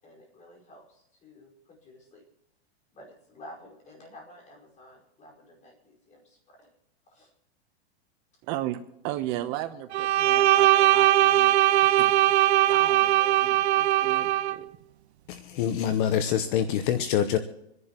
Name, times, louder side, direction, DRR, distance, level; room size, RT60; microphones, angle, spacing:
voice 1, 0.0-2.2 2.9-6.7 7.1-7.3 12.8-13.4, left 1 dB, 25° left, 0 dB, 5.0 m, -51 dB
voice 2, 8.5-12.1 12.7-13.1 13.4-14.7, right 14 dB, 40° right, 9 dB, 0.9 m, -36 dB
Bowed string instrument, 9.9-14.6, right 13 dB, 85° right, 0.6 m, -20 dB
voice 3, 15.3-17.4, left 9 dB, 50° left, 10 dB, 1.0 m, -25 dB
27.0 x 11.0 x 3.0 m, 0.86 s
supercardioid pair, 145°, 32 cm